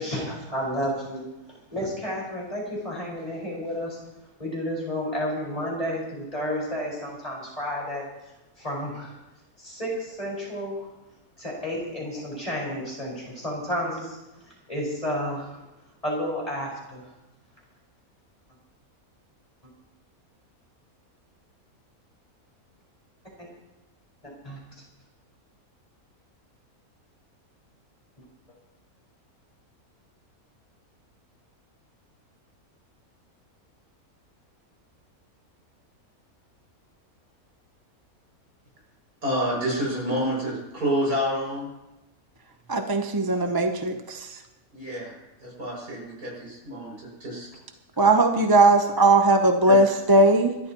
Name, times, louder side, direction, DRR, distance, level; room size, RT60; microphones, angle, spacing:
voice 1, 0.0-4.0 4.4-9.2 9.6-10.9 11.4-15.6 16.0-17.1 23.4-23.5 24.2-24.6, equal, 25° left, 5.5 m, -31 dB
voice 2, 39.2-41.7 44.7-45.2 45.4-47.5 49.7-49.8, equal, 85° right, 7.2 m, -28 dB
voice 3, 42.7-44.4 48.0-50.6, right 2 dB, 20° right, 0.7 m, -19 dB
28.5 x 12.5 x 3.0 m
omnidirectional pair, 1.6 m